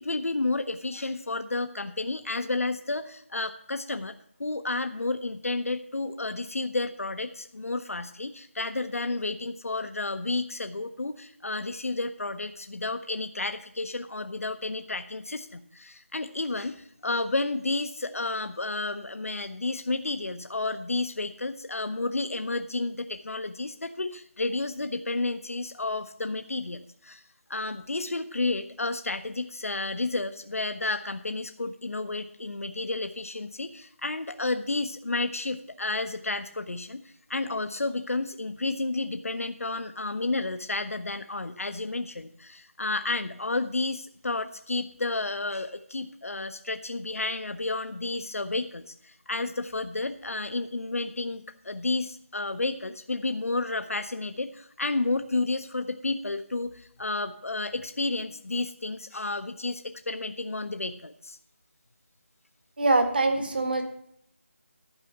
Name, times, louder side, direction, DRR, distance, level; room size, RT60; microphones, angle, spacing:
voice 1, 0.0-4.1 4.4-27.2 27.5-61.4, left 2 dB, 90° left, 8 dB, 0.8 m, -31 dB
voice 2, 62.8-63.8, right 2 dB, 40° right, 6 dB, 1.6 m, -23 dB
11.5 x 4.8 x 7.8 m, 0.70 s
figure-of-eight pair, 175°, 7 cm